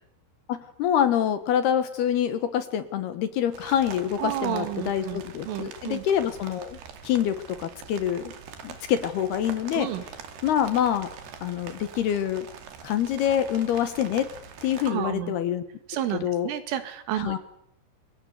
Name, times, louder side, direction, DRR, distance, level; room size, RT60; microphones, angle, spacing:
voice 1, 0.5-6.8 7.0-8.3 8.6-9.9 10.4-11.1 11.4-12.5 12.8-14.3 14.6-15.6 16.2-16.5 17.2-17.4, left 10 dB, 70° left, 11 dB, 2.8 m, -26 dB
sound 1, 3.5-14.9, right 7 dB, 60° right, 4.1 m, -44 dB
voice 2, 4.2-6.0 9.7-10.0 14.9-15.4 15.9-17.4, right 12 dB, 80° right, 11 dB, 4.5 m, -31 dB
29.5 x 23.5 x 8.2 m, 0.69 s
omnidirectional pair, 5.7 m